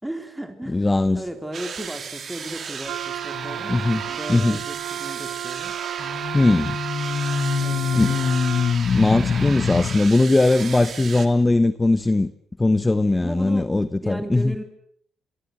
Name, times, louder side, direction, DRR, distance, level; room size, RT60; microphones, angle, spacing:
voice 1, 0.0-0.9 1.1-3.7 4.1-5.8 7.6-8.4 13.2-13.7 14.0-14.6, right 1 dB, 10° right, 6 dB, 3.8 m, -35 dB
voice 2, 0.6-1.3 3.7-4.6 6.3-6.8 8.0-8.1 8.9-12.3 12.6-14.6, left 2 dB, 15° left, 14 dB, 1.1 m, -20 dB
sound 1, 1.5-11.3, right 6 dB, 50° right, 3.1 m, -35 dB
Wind instrument woodwind instrument, 2.8-8.8, right 13 dB, 85° right, 1.1 m, -33 dB
sound 2, 3.3-3.7 6.0-10.0, left 6 dB, 45° left, 1.8 m, -25 dB
28.0 x 22.5 x 7.9 m, 0.67 s
cardioid pair, 90°, 0 cm